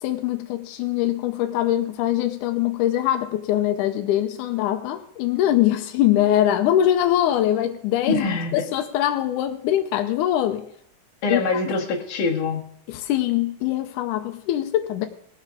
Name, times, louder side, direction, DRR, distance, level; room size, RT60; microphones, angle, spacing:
voice 1, 0.0-8.2 8.5-10.7 11.3-11.4 12.9-15.1, left 12 dB, 80° left, 7 dB, 1.9 m, -22 dB
voice 2, 8.1-8.6 11.2-12.7, left 3 dB, 60° left, -1 dB, 3.1 m, -24 dB
20.0 x 8.1 x 3.6 m, 0.68 s
omnidirectional pair, 4.2 m